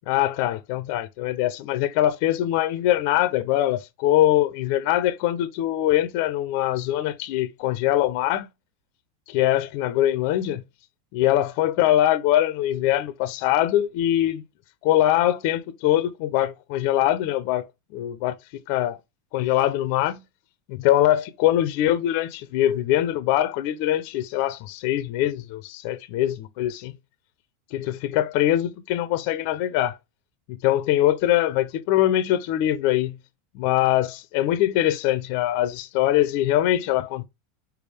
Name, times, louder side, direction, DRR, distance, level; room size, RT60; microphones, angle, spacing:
voice 1, 0.1-8.5 9.3-10.6 11.1-14.4 14.8-17.6 17.9-18.4 18.7-19.0 19.3-20.2 20.7-27.0 27.7-30.0 30.5-33.2 33.5-37.2, left 13 dB, 55° left, 0.5 m, -22 dB
4.7 x 3.4 x 3.2 m
supercardioid pair, 135°, 0 cm